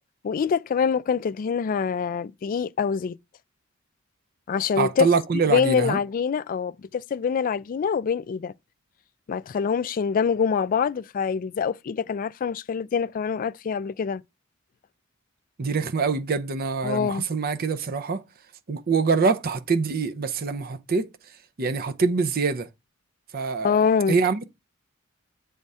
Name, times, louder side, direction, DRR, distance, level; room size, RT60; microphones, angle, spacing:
voice 1, 0.2-3.2 4.5-5.1 5.5-8.5 9.3-14.2 16.8-17.2 23.6-24.1, left 6 dB, 40° left, 0.3 m, -25 dB
voice 2, 4.8-6.0 15.6-18.2 18.7-21.1 21.6-22.7 23.3-23.8 24.1-24.5, right 4 dB, 45° right, 0.6 m, -24 dB
7.6 x 3.5 x 5.4 m
head